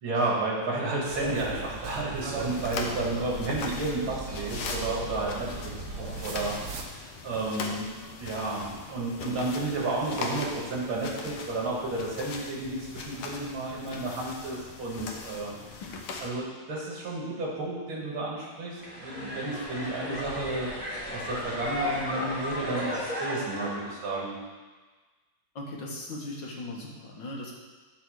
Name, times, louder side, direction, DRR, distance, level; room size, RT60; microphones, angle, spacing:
voice 1, 0.0-5.7 6.2-7.9 8.2-15.5 16.2-20.7 21.1-24.4, right 2 dB, 80° right, -4 dB, 2.6 m, -32 dB
sound 1, 1.0-6.8, right 4 dB, 50° right, 0.9 m, -38 dB
sound 2, 2.1-16.3, left 4 dB, 90° left, 1.8 m, -40 dB
sound 3, 18.8-23.9, left 1 dB, 5° left, 2.0 m, -34 dB
voice 2, 25.6-27.5, left 1 dB, 65° left, -2 dB, 2.1 m, -38 dB
12.0 x 4.2 x 6.4 m, 1.3 s
omnidirectional pair, 2.2 m